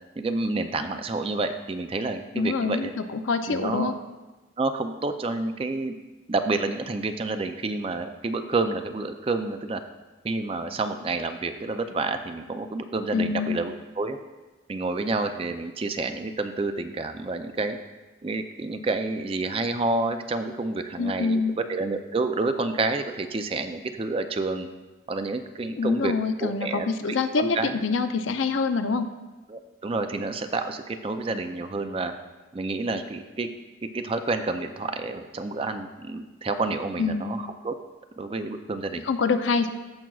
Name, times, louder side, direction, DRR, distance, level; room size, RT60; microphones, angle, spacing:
voice 1, 0.2-2.9 3.5-3.9 4.6-5.9 6.3-9.8 10.2-14.2 14.7-17.8 18.2-21.4 21.7-24.7 25.1-26.1 26.4-27.8 28.3-28.4 29.5-32.1 32.5-33.5 33.9-37.7 38.2-39.1, right 3 dB, 30° right, 8 dB, 0.4 m, -29 dB
voice 2, 2.3-3.9 13.1-13.6 21.0-21.6 25.8-29.1 37.0-37.4 39.1-39.7, left 4 dB, 80° left, 8 dB, 0.5 m, -25 dB
15.0 x 6.0 x 2.4 m, 1.2 s
head